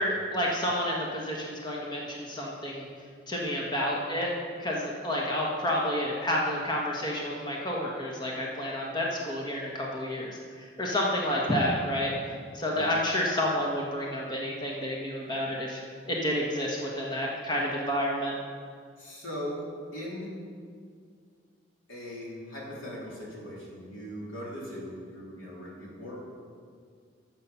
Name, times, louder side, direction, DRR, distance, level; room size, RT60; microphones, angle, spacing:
voice 1, 0.0-2.8 3.3-4.3 4.6-12.1 12.5-15.8 16.1-18.3, left 1 dB, 20° left, -3 dB, 1.4 m, -30 dB
voice 2, 19.0-20.3 21.9-26.2, equal, 85° left, -5 dB, 3.5 m, -39 dB
13.0 x 7.5 x 5.8 m, 2.1 s
head